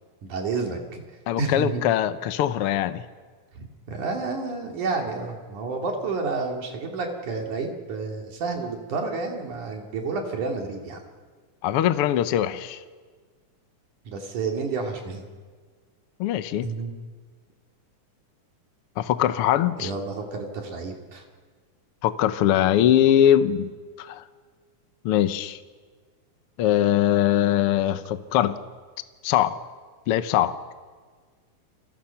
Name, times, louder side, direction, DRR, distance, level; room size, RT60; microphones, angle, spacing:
voice 1, 0.2-1.0 1.4-1.8 3.6-11.0 14.1-15.2 16.6-16.9 19.8-21.2, right 4 dB, 75° right, 2 dB, 4.0 m, -30 dB
voice 2, 1.3-3.0 11.6-12.8 16.2-16.7 19.0-19.9 22.0-23.7 24.0-24.2 25.0-25.6 26.6-28.6 29.2-29.6 30.1-30.6, left 11 dB, 70° left, 11 dB, 1.4 m, -21 dB
30.0 x 26.0 x 5.8 m, 1.5 s
omnidirectional pair, 3.6 m